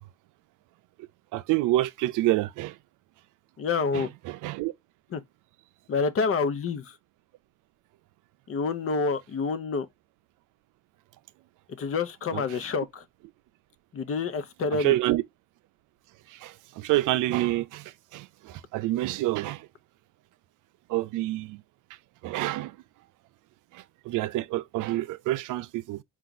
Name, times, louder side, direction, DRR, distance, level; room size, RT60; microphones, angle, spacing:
voice 1, 1.3-2.8 3.9-4.7 12.3-12.4 14.8-15.2 16.3-19.7 20.9-21.6 22.2-22.8 23.7-26.0, right 16 dB, 90° right, 0.5 m, -28 dB
voice 2, 3.6-4.1 5.1-5.2 5.9-7.0 8.5-9.9 11.8-13.0 13.9-15.0, left 4 dB, 45° left, 0.7 m, -28 dB
4.6 x 2.5 x 3.9 m
cardioid pair, 90°, 30 cm